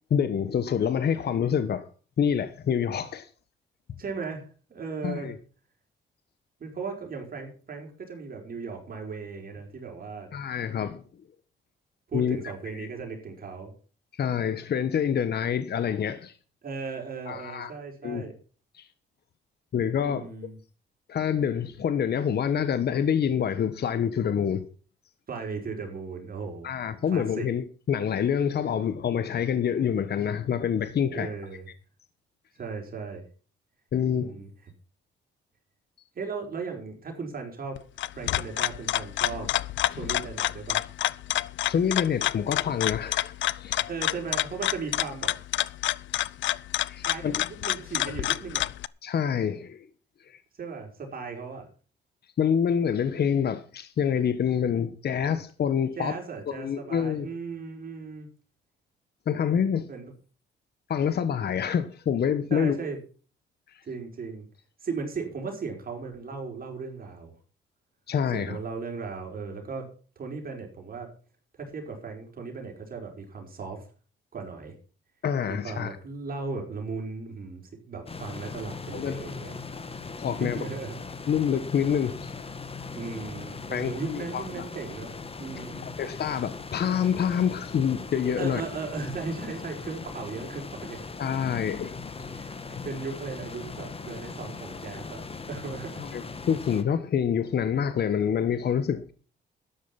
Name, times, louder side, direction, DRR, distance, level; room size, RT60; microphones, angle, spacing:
voice 1, 0.1-1.9 2.2-3.3 5.0-5.3 10.3-11.0 12.1-12.4 12.7-12.9 14.1-16.4 17.3-17.7 18.0-18.3 18.7-18.9 19.7-20.3 21.1-24.6 26.6-31.3 33.9-34.3 41.7-43.8 46.9-47.4 49.0-49.8 50.3-50.4 52.4-56.1 56.6-57.3 59.3-59.9 60.9-62.8 63.7-63.8 68.1-68.6 75.2-76.0 78.9-79.4 80.2-80.7 81.3-82.3 83.7-84.6 85.8-88.6 91.2-92.3 92.8-92.9 96.0-99.1, left 8 dB, 55° left, 1.4 m, -27 dB
voice 2, 4.0-5.3 6.6-10.3 12.1-13.7 16.6-18.3 20.0-20.6 25.3-26.7 27.1-27.5 31.1-31.6 32.5-33.2 34.1-34.5 36.1-37.8 38.1-39.6 39.9-40.8 43.9-45.4 47.0-48.7 50.6-51.7 56.0-58.3 59.9-60.1 62.5-63.0 63.8-64.5 64.8-67.3 68.3-69.9 70.1-71.1 71.6-73.9 74.3-74.8 75.5-79.6 80.4-80.9 82.9-85.1 85.4-85.9 88.4-91.0 92.3-95.2 95.5-96.0, right 4 dB, 45° right, 4.9 m, -37 dB
sound 1, 37.8-48.9, left 14 dB, 70° left, 0.6 m, -28 dB
sound 2, 78.1-96.8, left 4 dB, 30° left, 2.3 m, -39 dB
13.0 x 10.5 x 5.9 m
cardioid pair, 90°, 20 cm